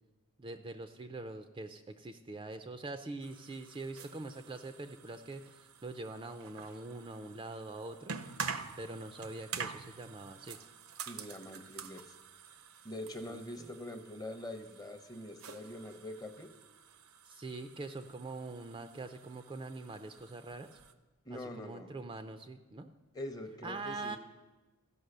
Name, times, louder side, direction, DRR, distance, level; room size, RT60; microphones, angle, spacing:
voice 1, 0.4-8.1 8.8-10.6 13.3-13.7 17.3-20.8 21.3-22.9 23.6-24.2, right 2 dB, 25° right, 8 dB, 0.4 m, -44 dB
sound 1, 3.2-20.9, right 6 dB, 70° right, 0.6 m, -48 dB
voice 2, 11.1-12.1 12.8-16.5 21.2-21.9 23.1-24.2, left 1 dB, 15° left, 7 dB, 0.7 m, -44 dB
14.0 x 5.5 x 6.6 m, 1.1 s
head